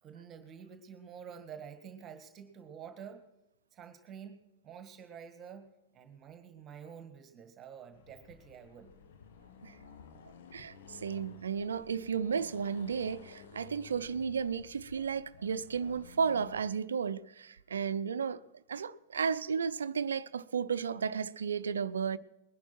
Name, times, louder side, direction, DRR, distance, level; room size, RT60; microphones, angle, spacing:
voice 1, 0.0-3.3 3.7-5.7 5.9-8.9, right 7 dB, 25° right, 1.7 m, -49 dB
Accelerating revving vroom, 7.9-16.6, left 6 dB, 55° left, 1.4 m, -54 dB
voice 2, 10.5-18.4 18.7-22.2, right 6 dB, 70° right, 0.6 m, -33 dB
20.5 x 11.5 x 4.4 m
figure-of-eight pair, 90°, 0 cm